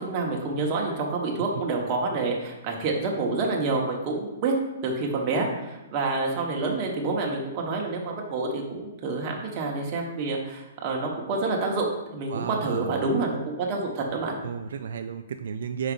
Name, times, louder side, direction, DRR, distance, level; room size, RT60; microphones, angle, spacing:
voice 1, 0.0-4.5 4.8-14.4, right 3 dB, 25° right, 0 dB, 1.0 m, -28 dB
voice 2, 12.3-13.1 14.4-15.9, right 7 dB, 65° right, 8 dB, 0.3 m, -33 dB
4.9 x 3.8 x 5.3 m, 1.0 s
hypercardioid pair, 170°, 0 cm